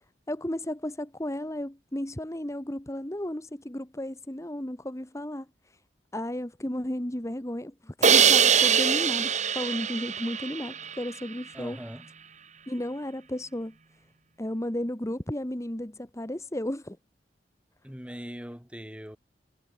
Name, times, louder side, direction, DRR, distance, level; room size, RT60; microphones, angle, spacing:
voice 1, 0.3-5.8 6.1-11.8 12.7-13.8 14.4-17.0, left 1 dB, 15° left, 1.5 m, -34 dB
Crash cymbal, 8.0-11.1, right 7 dB, 40° right, 1.8 m, -22 dB
voice 2, 11.5-12.1 17.8-19.2, equal, 5° right, 4.2 m, -41 dB
head